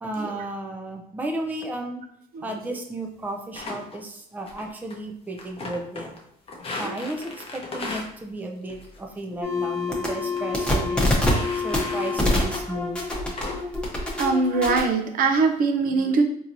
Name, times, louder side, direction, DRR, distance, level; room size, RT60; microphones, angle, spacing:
voice 1, 0.0-2.0 2.4-6.2 6.8-11.2 11.6-13.1, right 2 dB, 10° right, 2 dB, 0.5 m, -34 dB
sound 1, 3.5-4.0 4.5-5.0 5.3-6.2 6.5-8.1 8.7-9.0 9.3-9.6 10.2-10.4 10.7-10.8 11.2-12.7 13.1-13.9 14.3-14.5 14.9-15.4, left 3 dB, 35° left, 0.7 m, -37 dB
sound 2, 9.4-14.8, left 2 dB, 5° left, 0.9 m, -25 dB
voice 2, 14.2-16.2, right 4 dB, 60° right, 5 dB, 0.5 m, -22 dB
3.8 x 2.9 x 2.6 m, 0.74 s
cardioid pair, 110°, 17 cm